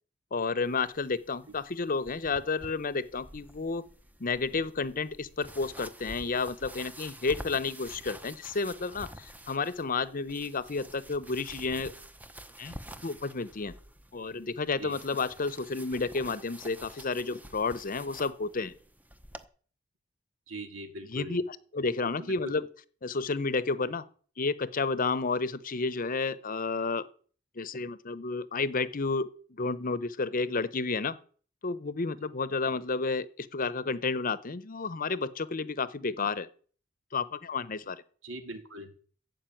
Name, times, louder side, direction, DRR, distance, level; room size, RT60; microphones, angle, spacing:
voice 1, 0.3-3.8 4.2-11.9 12.6-12.8 13.0-13.7 14.1-18.7 21.1-22.7 23.0-24.0 24.4-27.1 27.6-31.2 31.6-36.5 37.1-38.0, left 4 dB, 45° left, 0.8 m, -31 dB
sound 1, 0.6-19.5, right 1 dB, 10° right, 0.8 m, -49 dB
voice 2, 20.5-21.4 22.0-22.4 38.2-38.9, right 1 dB, 90° right, 2.4 m, -41 dB
14.5 x 5.3 x 9.2 m
head